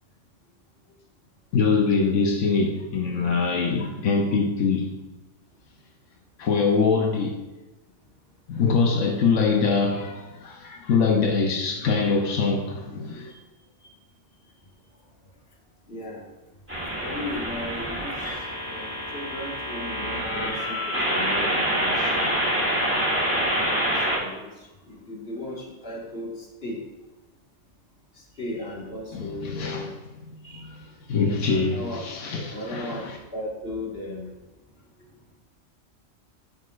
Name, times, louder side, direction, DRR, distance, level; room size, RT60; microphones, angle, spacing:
voice 1, 1.5-4.9 6.4-7.4 8.5-13.3 29.1-29.9 30.3-33.2, left 4 dB, 85° left, 1.1 m, -24 dB
voice 2, 15.9-16.2 17.0-22.5 23.8-26.8 28.1-29.9 30.4-30.7 31.2-32.0 32.3-34.4, left 1 dB, 50° left, 1.9 m, -36 dB
sound 1, 16.7-24.2, equal, 10° right, 2.3 m, -26 dB
11.0 x 6.5 x 2.4 m
omnidirectional pair, 1.2 m